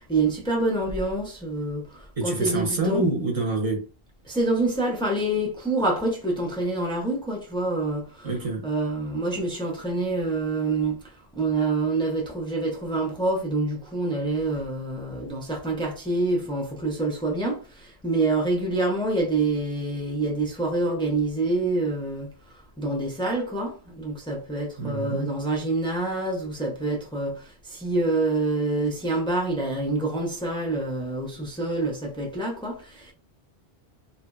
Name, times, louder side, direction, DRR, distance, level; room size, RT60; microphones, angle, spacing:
voice 1, 0.0-3.0 4.2-8.3 8.6-22.3 22.8-33.1, right 2 dB, 5° left, 0.5 m, -26 dB
voice 2, 2.2-3.8 8.2-8.7 24.8-25.3, right 2 dB, 35° right, 0.8 m, -26 dB
2.8 x 2.6 x 2.2 m
omnidirectional pair, 1.1 m